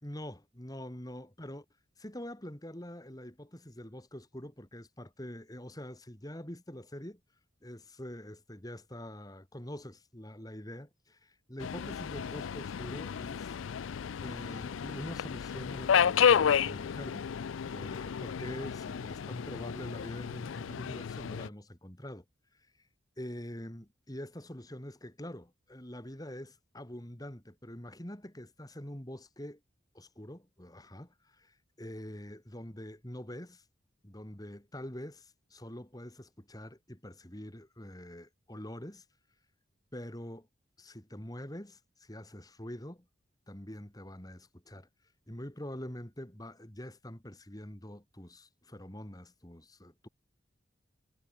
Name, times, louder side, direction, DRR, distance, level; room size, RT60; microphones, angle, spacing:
voice 1, 0.0-1.6 2.0-7.2 7.6-13.6 14.2-17.2 17.6-22.2 23.2-29.6 29.9-33.6 34.0-39.0 39.9-40.5 40.8-43.1 43.5-44.9 45.3-50.1, left 1 dB, 20° left, 2.6 m, -45 dB
Subway metro underground, 11.6-21.5, left 7 dB, 85° left, 0.4 m, -31 dB
head